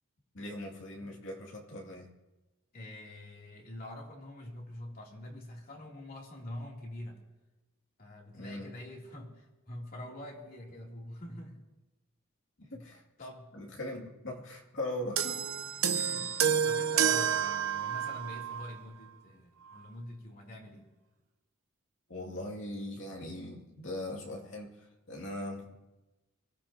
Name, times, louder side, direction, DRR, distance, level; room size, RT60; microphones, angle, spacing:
voice 1, 0.3-2.1 8.3-8.7 12.6-13.0 13.5-15.4 22.1-25.7, left 1 dB, 60° left, -1 dB, 2.5 m, -40 dB
voice 2, 2.7-7.2 8.0-11.6 12.7-12.9 13.2-13.5 15.9-20.9, left 1 dB, 45° left, -2 dB, 3.0 m, -45 dB
sound 1, 15.2-18.8 19.7-19.8, right 8 dB, 80° right, 0.8 m, -29 dB
24.0 x 15.5 x 2.9 m, 1.1 s
head